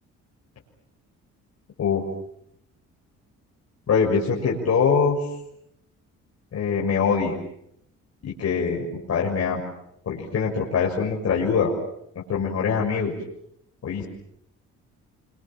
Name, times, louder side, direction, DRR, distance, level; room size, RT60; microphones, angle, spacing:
voice 1, 3.9-5.2 6.5-7.4 8.2-9.6 10.1-11.7 12.3-13.1 13.8-14.0, left 5 dB, 55° left, -3 dB, 6.4 m, -23 dB
30.0 x 26.0 x 7.4 m, 0.75 s
cardioid pair, 90°, 30 cm